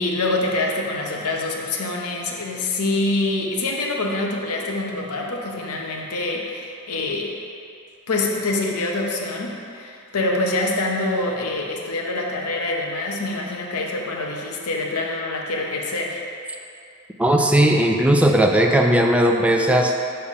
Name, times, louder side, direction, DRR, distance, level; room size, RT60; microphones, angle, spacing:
voice 1, 0.0-7.3 8.1-16.2, left 2 dB, 85° left, 0 dB, 0.8 m, -25 dB
voice 2, 17.2-19.9, right 1 dB, 5° right, 2 dB, 0.3 m, -17 dB
6.7 x 3.4 x 5.4 m, 2.5 s
head